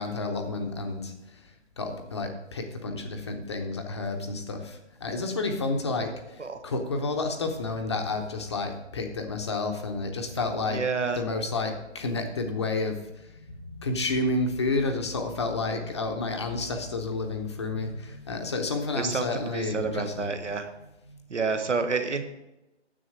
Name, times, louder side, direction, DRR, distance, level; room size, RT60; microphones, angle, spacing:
voice 1, 0.0-1.4 1.8-10.8 11.2-20.3 21.1-21.2, left 3 dB, 25° left, 5 dB, 0.7 m, -30 dB
voice 2, 10.7-11.2 19.0-20.7 21.3-22.2, right 4 dB, 85° right, 8 dB, 1.4 m, -29 dB
9.8 x 7.6 x 4.8 m, 0.97 s
figure-of-eight pair, 155°, 35 cm